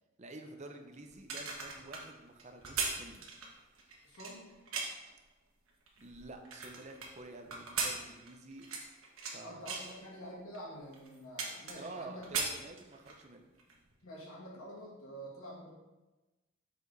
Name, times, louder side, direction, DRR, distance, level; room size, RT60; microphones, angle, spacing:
voice 1, 0.2-3.3 6.0-8.7 9.3-9.7 11.8-13.4, right 2 dB, 35° right, 5 dB, 0.7 m, -49 dB
sound 1, 1.1-5.1 5.7-7.1 7.5-9.4 9.7-9.9 10.5-10.6 10.9-12.0 12.2-13.2 13.6-13.8, right 4 dB, 85° right, 1.3 m, -38 dB
voice 2, 4.0-4.5 9.4-12.6 14.0-15.7, equal, 85° left, -4 dB, 2.3 m, -48 dB
7.4 x 4.7 x 4.0 m, 1.1 s
head